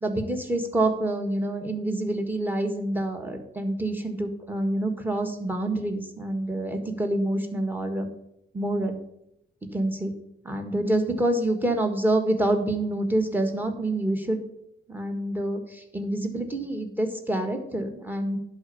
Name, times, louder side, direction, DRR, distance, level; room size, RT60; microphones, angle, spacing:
voice 1, 0.0-8.1 8.5-9.0 9.7-10.1 10.4-14.4 14.9-18.4, right 1 dB, 10° right, 4 dB, 1.6 m, -27 dB
11.0 x 4.4 x 7.2 m, 0.80 s
cardioid pair, 105°, 21 cm